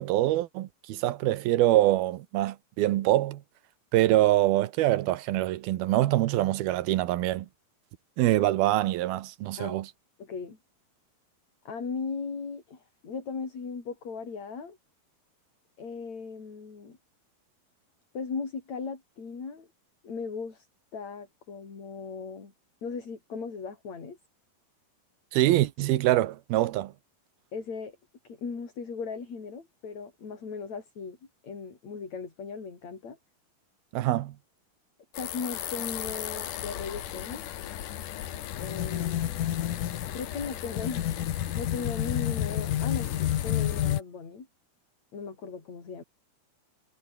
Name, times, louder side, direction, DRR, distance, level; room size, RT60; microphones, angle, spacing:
voice 1, 0.0-3.4 3.9-7.5 8.2-9.9 25.3-26.9 33.9-34.4, right 15 dB, 80° right, 2.9 m, -24 dB
voice 2, 10.2-10.6 11.7-14.8 15.8-17.0 18.1-19.7 20.0-20.7 20.9-22.5 22.8-24.2 27.5-28.0 28.2-31.2 31.4-33.2 35.2-37.5 38.6-39.4 40.1-41.1 41.6-44.5 45.1-46.0, left 5 dB, 45° left, 5.9 m, -37 dB
sound 1, 35.1-44.0, left 12 dB, 65° left, 2.7 m, -31 dB
omnidirectional pair, 4.5 m